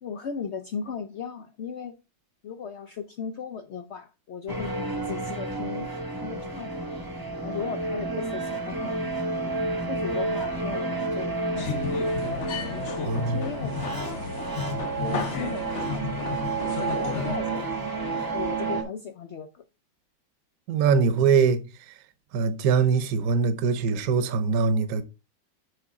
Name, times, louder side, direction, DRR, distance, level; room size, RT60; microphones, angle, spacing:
voice 1, 0.0-1.9 2.4-5.9 6.2-7.0 7.4-9.1 9.9-12.5 13.0-13.8 14.0-14.4 15.0-16.3 16.8-17.9 18.3-19.6, left 6 dB, 85° left, 0.6 m, -37 dB
sound 1, 4.5-18.8, right 3 dB, 15° right, 0.8 m, -30 dB
sound 2, 11.6-17.4, left 6 dB, 55° left, 0.9 m, -33 dB
voice 2, 13.0-13.5 20.7-21.6 21.9-22.0 22.3-25.0, right 5 dB, 60° right, 1.1 m, -22 dB
6.8 x 5.2 x 3.6 m
omnidirectional pair, 2.0 m